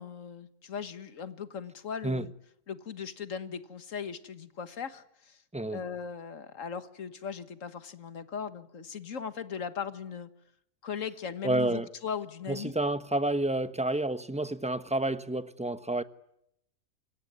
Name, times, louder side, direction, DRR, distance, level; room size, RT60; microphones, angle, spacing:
voice 1, 0.0-2.3 2.7-5.4 5.7-10.3 10.8-12.8, left 7 dB, 60° left, 1.8 m, -38 dB
voice 2, 11.4-11.9 12.5-16.0, right 1 dB, 5° right, 0.9 m, -29 dB
27.0 x 22.5 x 9.6 m
omnidirectional pair, 1.5 m